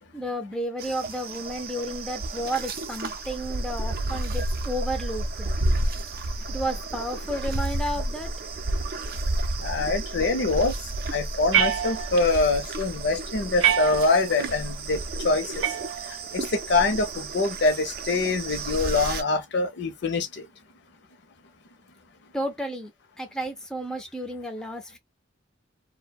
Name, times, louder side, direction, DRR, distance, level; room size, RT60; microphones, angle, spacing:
voice 1, 0.1-5.5 6.5-8.3 22.3-22.9 23.2-25.0, equal, 5° left, 0.4 m, -32 dB
sound 1, 0.8-19.2, right 2 dB, 50° right, 0.5 m, -31 dB
voice 2, 9.6-10.7 11.1-15.7 16.3-20.5, left 3 dB, 60° left, 0.7 m, -24 dB
sound 2, 11.5-12.4 13.6-14.4 15.6-16.4, right 10 dB, 85° right, 0.7 m, -26 dB
2.6 x 2.1 x 2.3 m
head